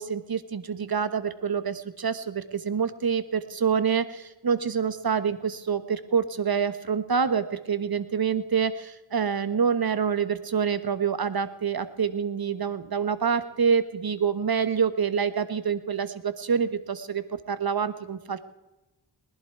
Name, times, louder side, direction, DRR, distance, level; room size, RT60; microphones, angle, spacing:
voice 1, 0.0-18.4, right 6 dB, 50° right, 13 dB, 1.4 m, -27 dB
20.0 x 11.5 x 4.7 m, 1.0 s
cardioid pair, 50°, 48 cm